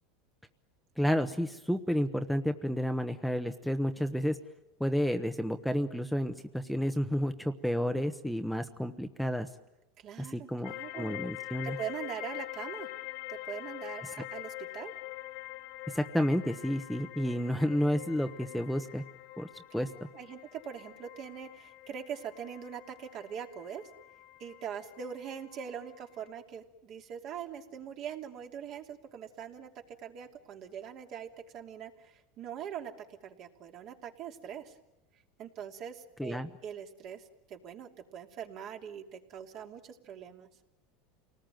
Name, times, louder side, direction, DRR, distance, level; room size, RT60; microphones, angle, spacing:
voice 1, 1.0-4.4 4.8-9.5 10.2-11.8 15.9-19.0 19.4-19.9 36.2-36.5, equal, ahead, 7 dB, 1.0 m, -31 dB
voice 2, 10.0-11.2 11.6-12.9 13.3-14.9 19.7-19.8 20.1-23.9 24.4-34.8 35.4-40.5, right 8 dB, 50° right, 3 dB, 2.8 m, -42 dB
sound 1, 10.6-26.3, left 18 dB, 65° left, 1.6 m, -45 dB
29.0 x 19.5 x 9.2 m, 1.0 s
supercardioid pair, 125°, 0 cm